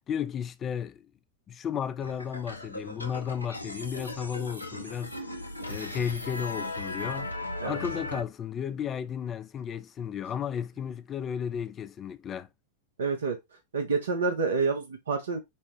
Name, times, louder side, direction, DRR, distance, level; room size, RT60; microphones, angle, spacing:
voice 1, 0.1-1.1 1.5-5.1 5.7-7.3 7.6-12.5, left 8 dB, 25° left, 0.4 m, -33 dB
sound 1, 2.0-8.2, left 1 dB, 85° left, 0.5 m, -37 dB
voice 2, 13.0-13.4 13.7-15.4, right 4 dB, 70° right, 0.7 m, -28 dB
5.4 x 2.1 x 3.3 m
figure-of-eight pair, 90°, 0 cm